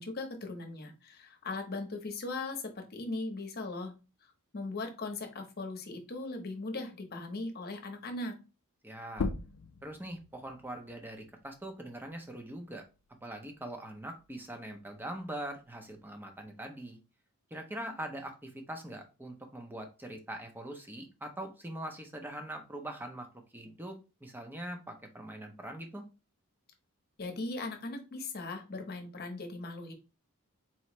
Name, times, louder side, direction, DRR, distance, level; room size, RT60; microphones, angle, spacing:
voice 1, 0.0-3.9 4.5-8.4 27.2-29.9, left 2 dB, 45° left, 4 dB, 1.0 m, -39 dB
voice 2, 8.8-9.3 9.8-12.8 13.2-17.0 17.5-23.3 23.5-26.0, right 1 dB, 10° right, 4 dB, 0.7 m, -42 dB
sound 1, 9.1-14.3 14.7-16.5, left 4 dB, 65° left, 0.4 m, -42 dB
4.3 x 3.1 x 3.0 m, 0.29 s
head